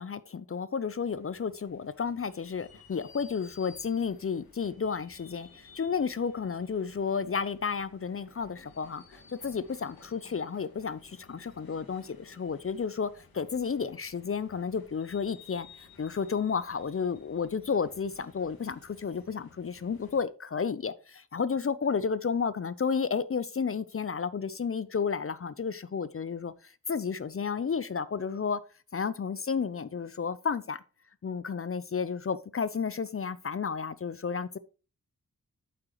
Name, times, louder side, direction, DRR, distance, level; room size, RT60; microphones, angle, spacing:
voice 1, 0.0-28.6 28.9-30.8 31.2-34.6, left 6 dB, 40° left, 0.6 m, -32 dB
sound 1, 0.8-20.2, left 4 dB, 90° left, 2.3 m, -56 dB
8.7 x 7.8 x 3.1 m
cardioid pair, 45°, 35 cm